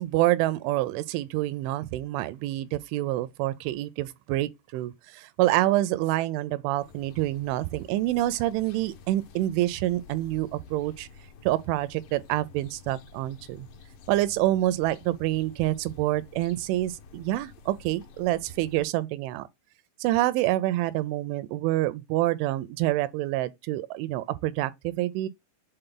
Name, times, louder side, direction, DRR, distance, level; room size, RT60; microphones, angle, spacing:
voice 1, 0.0-11.1 11.4-13.7 14.1-19.5 20.0-25.3, right 16 dB, 85° right, 3.0 m, -27 dB
sound 1, 6.8-18.9, left 5 dB, 70° left, 2.1 m, -50 dB
7.9 x 4.1 x 3.8 m
omnidirectional pair, 5.4 m